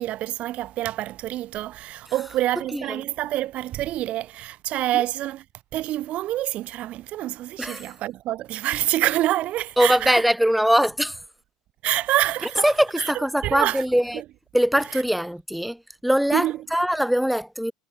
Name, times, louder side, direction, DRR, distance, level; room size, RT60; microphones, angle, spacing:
voice 1, 0.0-5.4 5.7-10.2 11.8-13.8 14.1-14.2 14.9-15.0 16.3-16.7, right 14 dB, 50° right, 1.7 m, -27 dB
voice 2, 9.8-11.2 12.6-14.2 14.5-15.8 16.0-17.7, equal, ahead, 0.8 m, -22 dB
hypercardioid pair, 90°, 3 cm